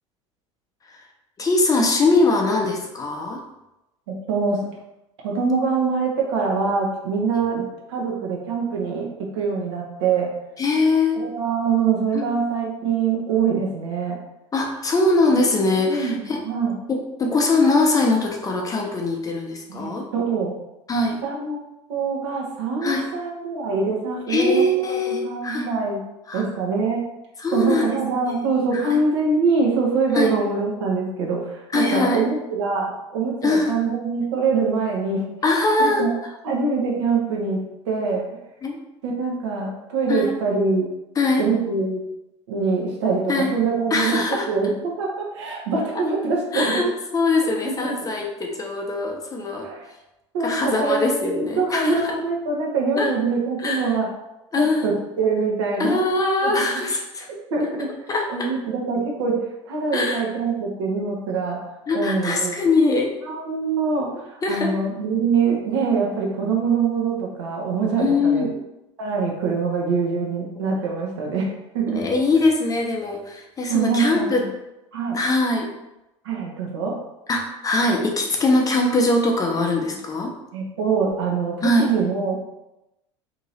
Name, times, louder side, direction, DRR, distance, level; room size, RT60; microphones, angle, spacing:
voice 1, 1.4-3.4 10.6-11.2 12.1-12.2 14.5-16.4 16.9-20.1 20.9-21.2 22.8-23.1 24.3-25.7 26.3-26.4 27.4-28.0 28.3-29.0 30.1-30.3 31.7-32.2 33.4-33.7 35.4-36.0 38.6-38.8 40.1-40.3 41.2-41.5 43.3-43.5 43.9-44.5 46.5-46.9 47.1-49.7 50.4-52.1 53.0-53.1 53.6-53.9 54.5-54.9 55.8-57.3 58.1-58.5 59.9-60.2 61.9-63.1 64.4-64.7 68.0-68.6 70.6-70.8 71.9-74.4 75.1-75.7 77.3-80.3 81.6-81.9, left 2 dB, 25° left, 1 dB, 0.7 m, -22 dB
voice 2, 4.1-4.7 5.2-7.6 7.9-10.3 11.1-14.2 15.8-16.7 19.7-20.5 21.2-21.6 21.9-26.0 26.3-27.0 27.5-35.3 35.8-36.1 36.4-38.3 39.0-40.9 41.4-42.0 42.5-44.2 44.5-46.8 47.6-48.1 49.6-49.9 50.3-54.1 54.5-56.0 56.4-56.8 57.3-57.9 58.3-61.6 61.9-62.5 63.3-68.4 69.0-72.1 73.7-74.4 74.9-75.2 76.2-77.0 80.5-82.4, right 4 dB, 65° right, -1 dB, 0.9 m, -24 dB
2.8 x 2.8 x 4.1 m, 0.93 s
figure-of-eight pair, 70°, 16 cm